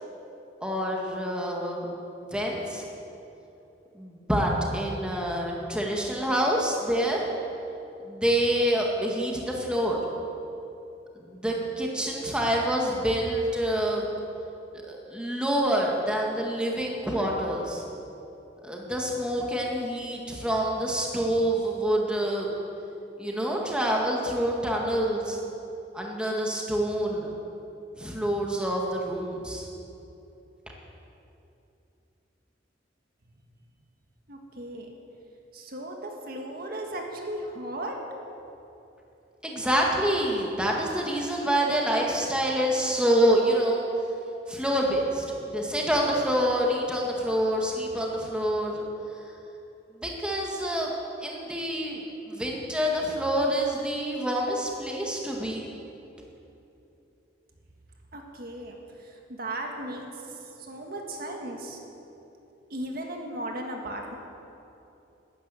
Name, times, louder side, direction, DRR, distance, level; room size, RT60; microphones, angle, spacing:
voice 1, 0.6-1.9 2.2-2.9 3.9-7.2 8.0-10.0 11.1-14.1 14.7-17.8 18.6-22.6 23.2-25.4 25.9-27.3 28.0-29.7 39.4-43.9 44.5-48.8 50.0-50.9 51.2-55.7, equal, 5° right, -2 dB, 1.9 m, -27 dB
voice 2, 34.3-35.0 35.5-38.0 58.1-61.8 62.7-64.2, right 1 dB, 55° right, 1 dB, 1.7 m, -36 dB
13.5 x 10.5 x 9.0 m, 2.9 s
head